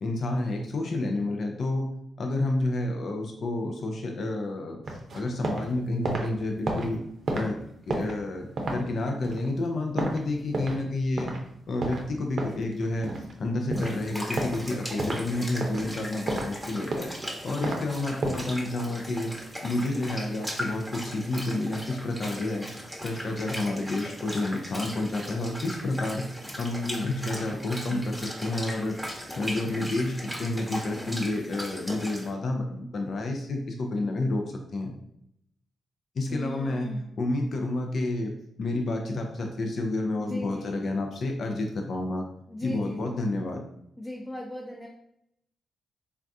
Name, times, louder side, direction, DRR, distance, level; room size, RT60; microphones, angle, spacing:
voice 1, 0.0-1.9 2.2-7.0 7.3-7.6 7.9-11.3 11.7-13.1 13.4-17.1 17.4-19.3 19.6-22.7 23.0-26.2 26.6-34.9 36.2-36.9 37.2-42.2 42.6-43.6, left 2 dB, 60° left, 2 dB, 0.4 m, -30 dB
sound 1, 4.8-5.7 5.9-10.9 11.2-11.4 11.8-13.4 13.7-14.0 14.4-14.6 15.0-15.2 15.6-16.5 16.8-17.8 18.2-18.5, right 2 dB, 60° right, 0.6 m, -31 dB
sound 2, 13.7-32.3, equal, 5° right, 0.9 m, -38 dB
voice 2, 36.3-37.1 40.2-41.0 42.5-43.1 44.0-44.9, left 1 dB, 20° left, -3 dB, 0.6 m, -38 dB
3.4 x 2.2 x 2.6 m, 0.74 s
supercardioid pair, 45°, 0 cm